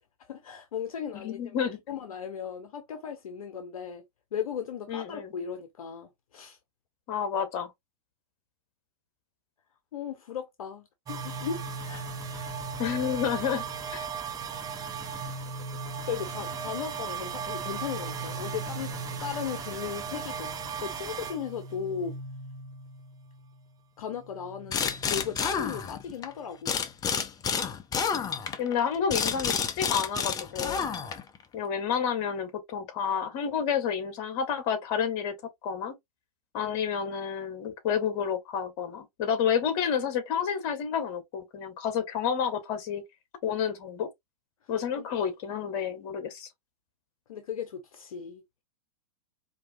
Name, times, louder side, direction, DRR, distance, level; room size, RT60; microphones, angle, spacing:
voice 1, 0.2-4.0 4.3-6.6 9.9-12.6 16.1-20.5 20.8-22.2 24.0-26.7 44.6-45.1 45.5-46.0 47.3-48.4, left 7 dB, 70° left, 0.7 m, -37 dB
voice 2, 1.1-1.8 4.9-5.3 7.1-7.7 12.8-13.6 13.9-14.1 28.6-30.8 31.5-35.3 35.6-35.9 36.5-43.0 43.4-44.1 44.7-46.5, left 7 dB, 45° left, 1.6 m, -30 dB
sound 1, 11.1-23.8 24.1-26.5, right 5 dB, 20° right, 0.8 m, -37 dB
sound 2, 24.7-26.3 26.6-31.4, left 6 dB, 20° left, 0.6 m, -30 dB
4.6 x 2.8 x 2.5 m
hypercardioid pair, 105°, 19 cm